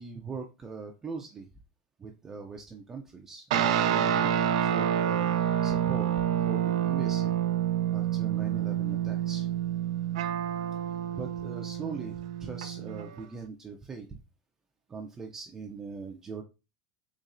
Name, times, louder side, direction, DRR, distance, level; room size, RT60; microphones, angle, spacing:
voice 1, 0.0-1.5 2.0-5.3 5.6-6.1 6.5-7.4 7.9-9.5 11.1-14.2 14.9-16.4, right 5 dB, 10° right, 2 dB, 0.3 m, -41 dB
sound 1, 3.5-13.2, right 10 dB, 75° right, 0.5 m, -28 dB
4.1 x 3.0 x 2.5 m, 0.28 s
supercardioid pair, 175°, 3 cm